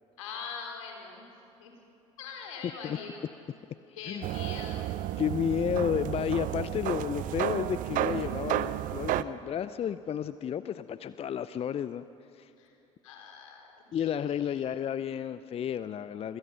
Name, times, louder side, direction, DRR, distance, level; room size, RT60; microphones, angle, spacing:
voice 1, 0.2-1.2 1.6-1.7 2.2-3.3 4.0-4.9 12.6-12.7 13.0-14.7, left 5 dB, 75° left, 2 dB, 4.1 m, -43 dB
sound 1, 4.2-9.2, right 14 dB, 55° right, 0.8 m, -32 dB
voice 2, 5.2-12.0 12.3-12.5 13.9-16.4, left 9 dB, 35° left, 14 dB, 0.6 m, -32 dB
27.5 x 25.0 x 5.7 m, 2.8 s
figure-of-eight pair, 60°, 17 cm